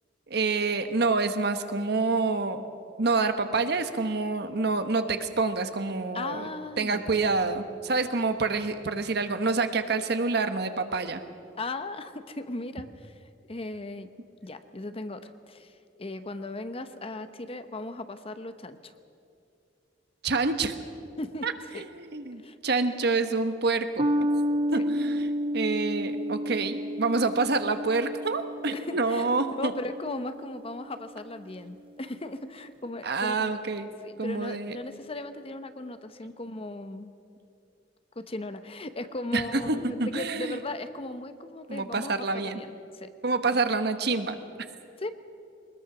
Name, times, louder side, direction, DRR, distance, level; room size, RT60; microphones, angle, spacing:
voice 1, 0.3-2.6 3.0-6.5 6.8-11.2 20.2-20.8 21.4-24.0 24.7-25.3 25.5-29.7 33.0-33.9 34.2-34.8 39.3-40.6 41.7-42.6 43.2-44.4, right 3 dB, 65° right, 9 dB, 1.2 m, -27 dB
voice 2, 6.1-7.0 11.6-13.1 13.5-14.1 14.4-15.7 16.0-18.9 21.2-21.5 21.7-21.8 22.4-22.5 28.7-33.5 34.0-37.1 38.2-43.1 45.0-45.1, left 2 dB, 30° left, 10 dB, 0.9 m, -37 dB
sound 1, 24.0-30.7, equal, 30° right, 0.7 m, -31 dB
22.0 x 20.5 x 6.1 m, 2.5 s
head